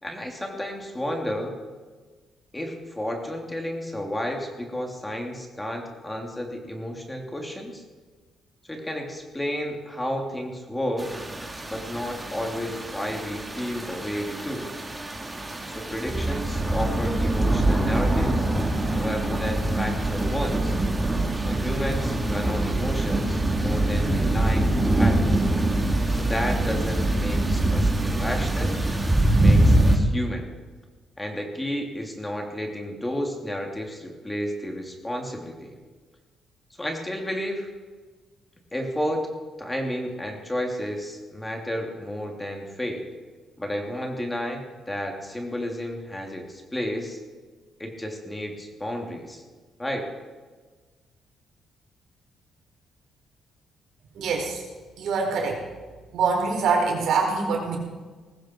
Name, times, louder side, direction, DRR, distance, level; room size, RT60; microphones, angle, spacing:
voice 1, 0.0-1.6 2.5-7.8 8.7-11.1 11.7-14.7 15.6-18.5 18.9-20.8 21.5-25.4 26.2-28.7 29.4-30.5 31.2-35.7 36.8-37.7 38.7-39.3 39.6-43.0 43.6-47.2 47.8-49.4 49.8-50.1, equal, 10° left, 2 dB, 3.0 m, -32 dB
sound 1, 11.0-30.0, right 1 dB, 15° right, 2.5 m, -24 dB
voice 2, 54.2-54.6 55.0-55.6 56.1-57.8, right 4 dB, 75° right, 0 dB, 4.6 m, -24 dB
19.5 x 15.0 x 4.6 m, 1.4 s
cardioid pair, 90°, 0 cm